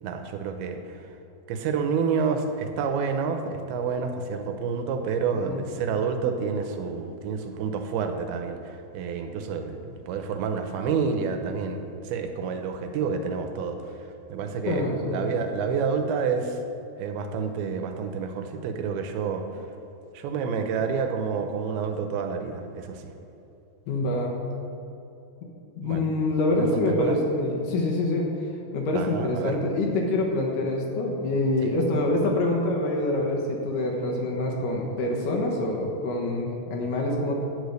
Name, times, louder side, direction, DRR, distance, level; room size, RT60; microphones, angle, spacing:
voice 1, 0.0-1.1 1.5-16.6 17.0-19.4 20.1-23.1 25.8-26.1 26.6-27.2 28.9-29.6 31.6-31.8, right 5 dB, 85° right, 6 dB, 2.6 m, -29 dB
voice 2, 14.7-15.3 23.9-24.3 25.8-28.3 28.7-37.4, left 2 dB, 70° left, -1 dB, 2.5 m, -26 dB
11.0 x 5.0 x 7.9 m, 2.9 s
omnidirectional pair, 4.5 m